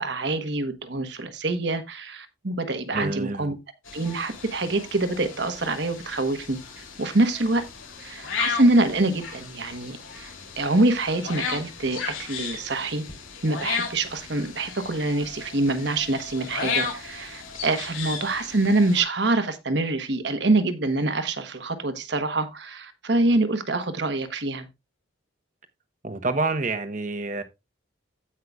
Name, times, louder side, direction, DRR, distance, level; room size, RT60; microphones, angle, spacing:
voice 1, 0.0-3.6 3.9-6.6 7.0-7.6 8.0-13.0 13.4-24.7, right 2 dB, 60° right, 1.2 m, -25 dB
voice 2, 2.9-3.5 26.0-27.4, right 3 dB, 40° right, 0.9 m, -27 dB
sound 1, 3.9-19.0, left 5 dB, 85° left, 3.1 m, -35 dB
16.0 x 5.7 x 2.4 m
head